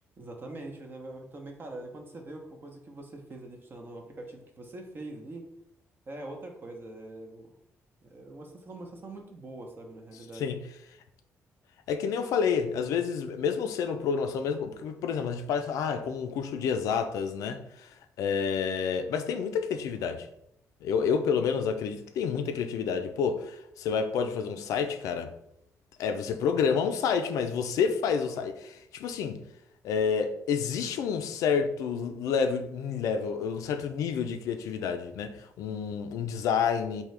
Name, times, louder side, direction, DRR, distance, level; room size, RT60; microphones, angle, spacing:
voice 1, 0.2-5.5 6.1-7.5 8.0-10.5, right 2 dB, 40° right, 0.8 m, -43 dB
voice 2, 11.9-20.3 20.8-25.3 26.0-29.4 29.8-37.0, left 6 dB, 90° left, 0.4 m, -29 dB
3.6 x 2.7 x 3.3 m
cardioid pair, 110°, 6 cm